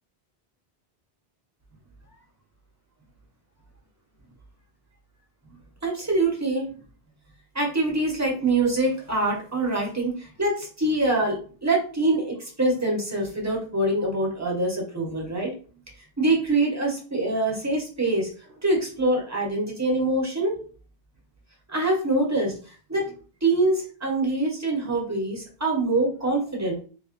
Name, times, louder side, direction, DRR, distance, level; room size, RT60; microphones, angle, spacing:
voice 1, 5.8-6.7 7.5-15.5 16.2-18.3 18.6-20.6 21.7-22.5 22.9-23.1 23.4-26.8, right 2 dB, 15° right, -1 dB, 1.0 m, -24 dB
3.1 x 2.8 x 2.9 m, 0.40 s
omnidirectional pair, 1.0 m